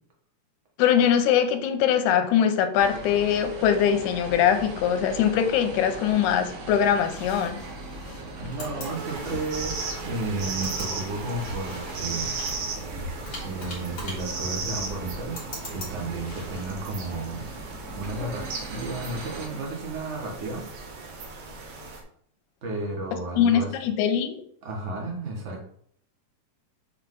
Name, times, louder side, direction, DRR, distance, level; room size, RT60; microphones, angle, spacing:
voice 1, 0.8-7.6 23.4-24.4, left 9 dB, 90° left, 8 dB, 2.1 m, -22 dB
sound 1, 2.8-19.5, right 2 dB, 75° right, 3.0 m, -40 dB
sound 2, 6.7-16.7, left 1 dB, 30° left, 2.6 m, -42 dB
voice 2, 8.4-12.3 13.4-17.5 17.9-20.6 22.6-23.7 24.6-25.6, right 2 dB, 35° right, 0 dB, 1.2 m, -33 dB
sound 3, 8.8-22.0, right 4 dB, 60° right, 1.8 m, -36 dB
7.0 x 4.5 x 3.8 m, 0.63 s
omnidirectional pair, 3.5 m